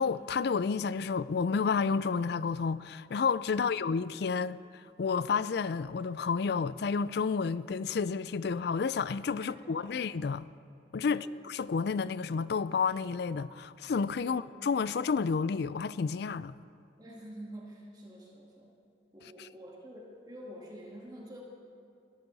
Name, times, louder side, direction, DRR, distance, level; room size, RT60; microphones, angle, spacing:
voice 1, 0.0-4.6 5.0-10.5 10.9-16.6, left 5 dB, 60° left, 0.4 m, -30 dB
voice 2, 9.4-10.0 11.1-11.3 14.2-14.4 17.0-18.7 19.1-21.4, right 1 dB, 20° right, 2.0 m, -48 dB
20.5 x 13.5 x 4.1 m
head